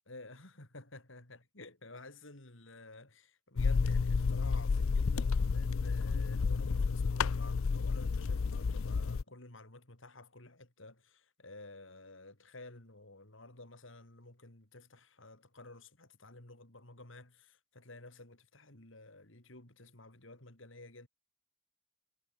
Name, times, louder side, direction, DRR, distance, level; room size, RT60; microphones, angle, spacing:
voice 1, 0.1-21.1, left 2 dB, 65° left, 3.8 m, -52 dB
sound 1, 3.6-9.2, left 4 dB, 85° left, 0.5 m, -31 dB
head